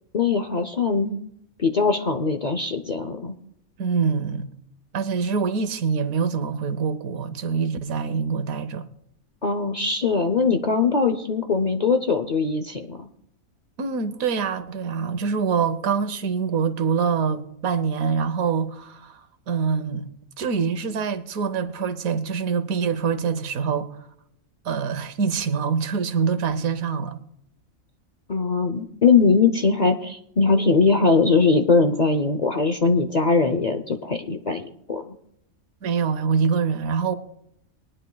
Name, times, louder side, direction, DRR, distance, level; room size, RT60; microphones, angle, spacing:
voice 1, 0.1-1.2 1.6-3.3 9.4-13.1 28.3-35.0, left 4 dB, 45° left, 0.6 m, -21 dB
voice 2, 3.8-4.5 4.9-8.9 13.8-19.2 19.5-20.1 20.4-23.9 24.6-27.2 35.8-37.1, right 6 dB, 80° right, 1.3 m, -25 dB
22.5 x 10.0 x 2.3 m
omnidirectional pair, 1.5 m